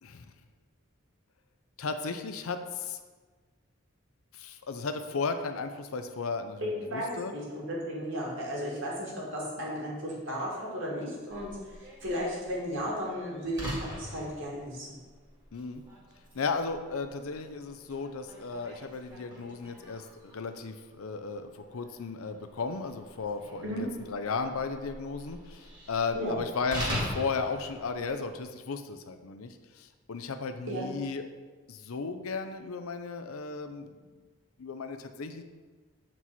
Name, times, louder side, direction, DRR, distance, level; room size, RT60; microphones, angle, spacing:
voice 1, 1.8-3.0 4.3-7.3 15.5-15.8 16.3-31.3 31.7-34.0 34.6-35.4, left 4 dB, 85° left, 8 dB, 0.6 m, -35 dB
voice 2, 6.6-14.9 23.6-23.8 26.1-26.4 30.7-30.9, equal, 65° right, -4 dB, 2.1 m, -34 dB
Slam, 11.3-28.4, equal, 20° right, 1.7 m, -43 dB
7.6 x 4.6 x 4.1 m, 1.4 s
head